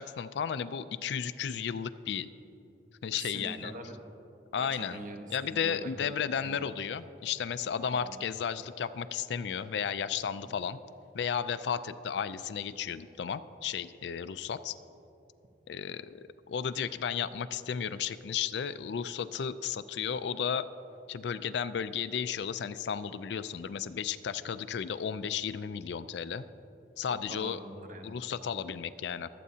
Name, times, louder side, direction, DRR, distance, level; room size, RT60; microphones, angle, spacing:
voice 1, 0.0-2.3 3.0-3.7 4.5-5.0 5.3-10.8 11.1-14.8 15.7-20.7 21.1-26.4 27.0-27.6 28.0-29.3, left 7 dB, 65° left, 13 dB, 0.4 m, -34 dB
voice 2, 3.1-4.1 4.6-6.7 7.8-8.2 10.4-10.6 27.3-28.2, right 1 dB, 45° right, 3 dB, 1.0 m, -44 dB
24.0 x 8.4 x 2.8 m, 2.9 s
head